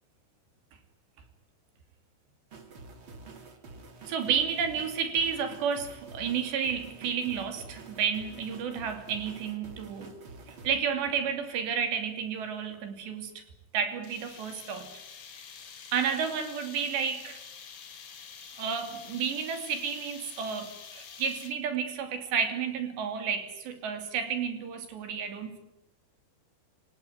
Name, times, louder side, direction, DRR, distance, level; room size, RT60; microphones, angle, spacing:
sound 1, 2.5-10.8, right 3 dB, 35° right, 2.6 m, -48 dB
voice 1, 4.1-10.1 10.5-13.4 13.7-14.9 15.9-17.4 18.6-25.6, right 7 dB, 70° right, 7 dB, 4.9 m, -31 dB
sound 2, 14.0-21.8, left 6 dB, 70° left, 1.1 m, -47 dB
27.0 x 18.5 x 9.4 m, 0.91 s
omnidirectional pair, 5.1 m